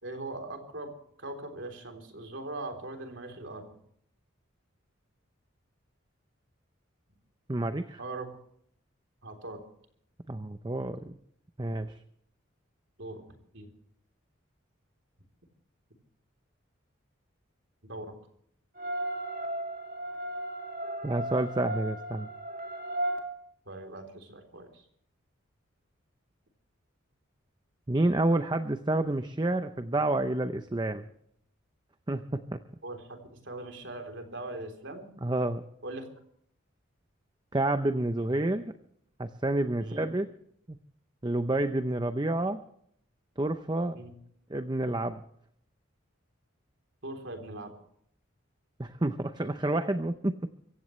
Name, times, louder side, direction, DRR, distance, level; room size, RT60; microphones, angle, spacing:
voice 1, 0.0-0.9 1.2-3.7 8.0-8.3 9.2-9.6 13.0-13.2 13.5-13.7 17.8-18.2 23.7-24.8 32.8-35.1 35.8-36.1 39.8-40.1 43.9-44.1 47.0-47.7, right 2 dB, 65° right, 5 dB, 3.6 m, -40 dB
voice 2, 7.5-8.0 10.3-11.2 11.6-12.0 21.0-22.3 27.9-31.1 32.1-32.4 35.2-35.6 37.5-38.7 39.2-40.3 40.7-40.8 41.2-42.6 43.4-44.0 44.5-45.2 48.8-50.5, right 2 dB, 20° right, 9 dB, 0.7 m, -29 dB
sound 1, 18.8-23.2, right 1 dB, 45° right, 2.6 m, -35 dB
24.5 x 15.5 x 3.2 m, 0.67 s
head